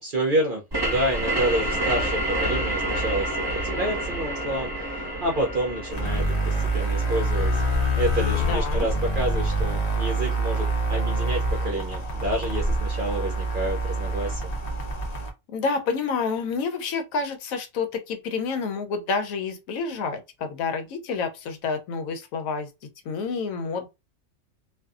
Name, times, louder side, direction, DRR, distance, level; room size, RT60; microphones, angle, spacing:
voice 1, 0.0-7.6 7.9-14.5, right 1 dB, 60° right, 0.5 m, -29 dB
sound 1, 0.7-10.1, right 1 dB, 20° right, 1.0 m, -30 dB
sound 2, 5.9-15.3, right 1 dB, 55° left, 0.4 m, -26 dB
voice 2, 8.4-8.9 15.5-22.7 23.0-23.9, left 4 dB, 80° left, 1.0 m, -29 dB
2.6 x 2.3 x 2.3 m
omnidirectional pair, 1.4 m